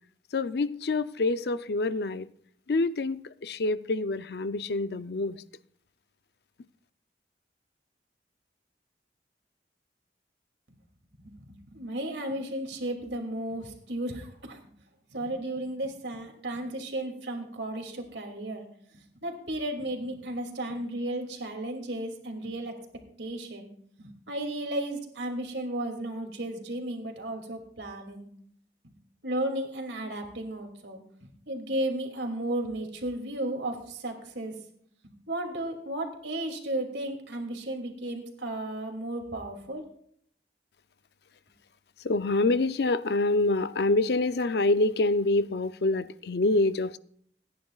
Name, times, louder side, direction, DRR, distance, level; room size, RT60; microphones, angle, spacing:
voice 1, 0.3-2.3 2.7-5.4 42.0-47.0, left 2 dB, 65° left, 0.5 m, -26 dB
voice 2, 11.2-14.8 15.1-18.6 18.9-22.8 23.2-23.7 24.0-28.3 28.8-28.9 29.2-34.5 35.0-39.8, right 1 dB, 90° right, 2.6 m, -34 dB
27.0 x 10.0 x 2.4 m
head